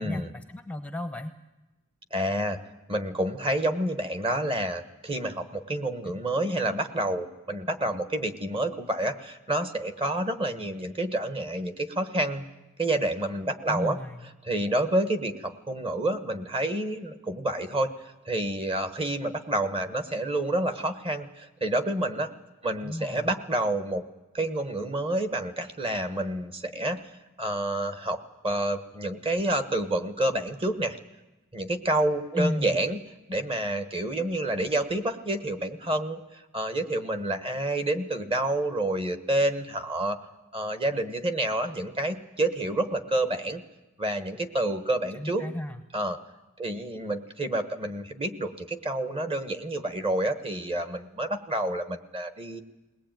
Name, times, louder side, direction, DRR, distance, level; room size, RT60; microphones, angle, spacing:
voice 1, 0.0-1.3 13.7-14.3 22.8-23.3 32.4-32.8 45.2-45.8, left 1 dB, 5° left, 8 dB, 0.7 m, -33 dB
voice 2, 2.1-2.6 2.9-12.5 12.8-14.0 14.4-17.9 18.3-22.3 22.6-24.0 24.3-27.1 27.4-28.2 28.4-31.0 31.5-33.0 33.3-40.2 40.5-43.6 44.0-45.4 45.9-46.2 46.6-52.6, right 1 dB, 25° right, 9 dB, 1.3 m, -28 dB
21.5 x 18.5 x 9.1 m, 1.0 s
head